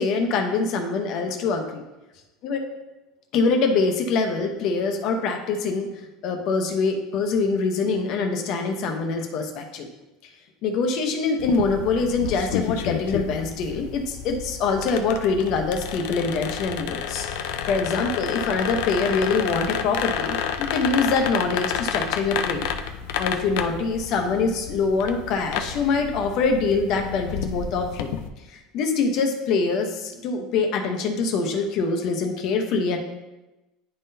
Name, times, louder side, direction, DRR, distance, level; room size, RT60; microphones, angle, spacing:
voice 1, 0.0-1.8 2.4-2.6 3.3-5.9 6.2-9.9 10.6-17.3 17.7-22.7 23.2-28.1 28.5-33.0, left 4 dB, 45° left, 4 dB, 0.8 m, -24 dB
sound 1, 11.4-28.3, left 8 dB, 70° left, 0.5 m, -30 dB
10.5 x 3.8 x 2.7 m, 1.0 s
cardioid pair, 160°, 0 cm